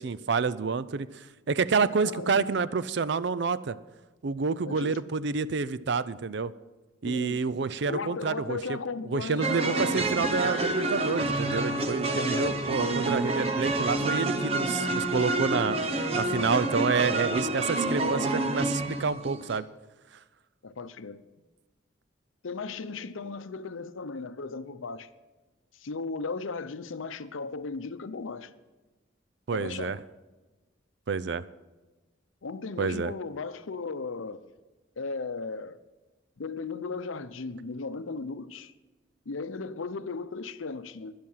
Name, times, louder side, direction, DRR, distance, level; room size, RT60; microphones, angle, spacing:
voice 1, 0.0-3.8 4.2-6.5 7.0-8.8 9.0-15.8 16.2-19.6 29.5-30.0 31.1-31.4 32.8-33.1, right 5 dB, 60° right, 0.5 m, -28 dB
voice 2, 2.0-2.6 4.6-5.0 7.0-7.4 7.9-10.0 12.0-13.0 18.0-18.3 20.6-21.2 22.4-25.1 25.8-28.5 29.5-30.0 32.4-34.4 35.0-35.8 36.4-38.7 39.3-41.1, left 4 dB, 85° left, 0.7 m, -36 dB
sound 1, 9.4-19.6, right 2 dB, 30° right, 0.9 m, -28 dB
12.5 x 10.5 x 5.7 m
head